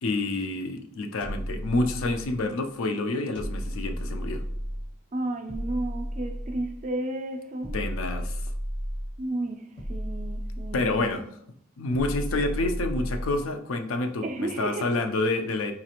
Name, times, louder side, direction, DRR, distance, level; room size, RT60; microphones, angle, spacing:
voice 1, 0.0-4.4 7.7-8.4 10.7-11.2 11.8-15.7, left 2 dB, 80° left, 0.4 m, -28 dB
sound 1, 1.2-2.5 3.4-5.0 5.5-6.9 7.6-9.2 9.8-11.2 11.9-13.5, equal, 25° left, 0.5 m, -33 dB
voice 2, 5.1-7.8 9.2-11.3 14.2-14.9, right 1 dB, 35° right, 0.3 m, -33 dB
4.1 x 2.4 x 2.9 m
head